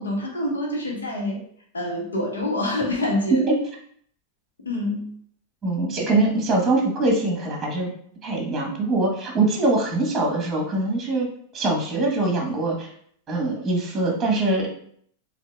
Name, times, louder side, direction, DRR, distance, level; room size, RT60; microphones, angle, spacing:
voice 1, 0.0-1.4 1.7-3.5 4.6-5.1, left 1 dB, 75° left, 0 dB, 1.2 m, -26 dB
voice 2, 5.6-7.9 8.2-11.3 11.5-12.9 13.3-14.7, right 2 dB, 15° right, 0 dB, 1.2 m, -23 dB
7.3 x 2.7 x 2.3 m, 0.62 s
figure-of-eight pair, 90°, 0 cm